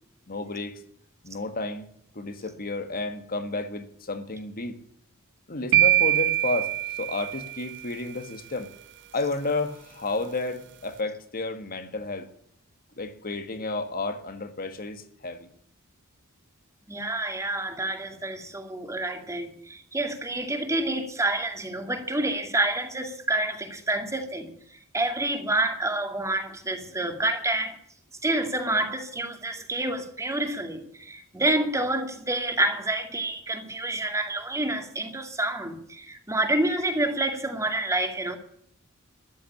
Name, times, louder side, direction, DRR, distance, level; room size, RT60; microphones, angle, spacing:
voice 1, 0.3-0.8 1.2-1.9 2.1-4.8 5.5-8.7 9.1-12.3 13.0-15.5, left 2 dB, 45° left, 1.8 m, -32 dB
sound 1, 5.7-7.8, right 13 dB, 55° right, 0.6 m, -23 dB
voice 2, 16.9-27.8 28.2-38.4, right 2 dB, 15° right, 2.3 m, -28 dB
14.0 x 11.5 x 8.6 m
head